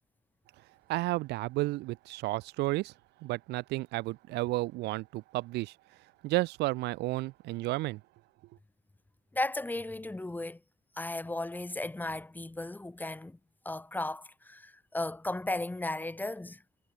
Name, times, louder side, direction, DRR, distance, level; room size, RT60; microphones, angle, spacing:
voice 1, 0.9-2.9 3.2-5.7 6.2-8.0, right 19 dB, 85° right, 1.6 m, -32 dB
voice 2, 9.3-10.6 11.0-13.4 13.7-16.6, left 2 dB, 10° left, 3.4 m, -35 dB
cardioid pair, 110°, 17 cm